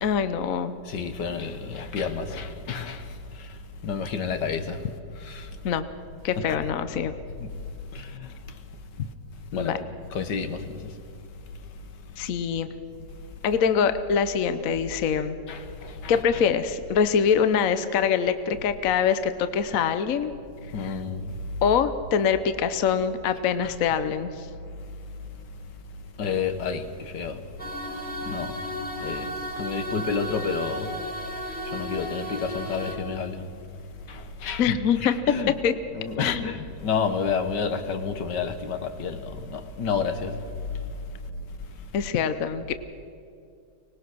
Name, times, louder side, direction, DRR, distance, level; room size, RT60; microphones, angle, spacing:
voice 1, 0.0-0.7 5.6-5.8 6.2-7.1 9.5-9.8 12.2-12.7 13.4-15.4 16.1-20.3 20.8-21.0 21.6-24.5 34.6-35.1 35.6-35.7 36.2-36.5 41.9-42.7, left 7 dB, 60° left, 1.1 m, -24 dB
voice 2, 0.9-3.0 3.4-3.5 3.8-4.8 5.2-5.5 6.5-6.6 7.4-7.5 7.9-8.3 9.5-9.8 10.1-10.6 15.5-16.1 20.7-21.3 23.6-23.7 26.2-27.4 28.3-28.6 29.0-30.9 31.7-33.5 34.1-34.7 35.0-35.5 36.0-40.4, left 5 dB, 75° left, 1.9 m, -30 dB
sound 1, 27.6-32.9, equal, 5° left, 2.4 m, -34 dB
25.0 x 19.5 x 6.2 m
omnidirectional pair, 1.9 m